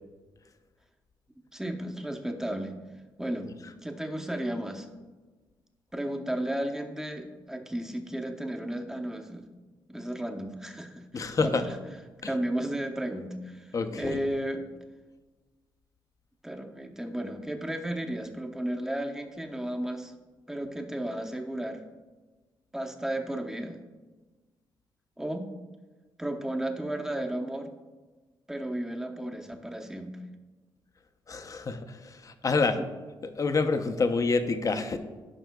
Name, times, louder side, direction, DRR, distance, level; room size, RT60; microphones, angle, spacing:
voice 1, 1.5-2.7 3.2-3.5 3.8-4.9 5.9-9.5 9.9-11.8 12.3-14.6 16.4-20.1 20.5-21.8 22.7-23.8 25.2-25.5 26.2-27.7 28.5-30.2 32.8-32.9, right 1 dB, 5° right, 3 dB, 0.8 m, -33 dB
voice 2, 11.1-11.6 12.2-12.3 13.7-14.2 31.3-32.8 33.2-35.0, left 4 dB, 40° left, 8 dB, 0.7 m, -27 dB
14.0 x 5.5 x 2.3 m, 1.3 s
cardioid pair, 90°, 9 cm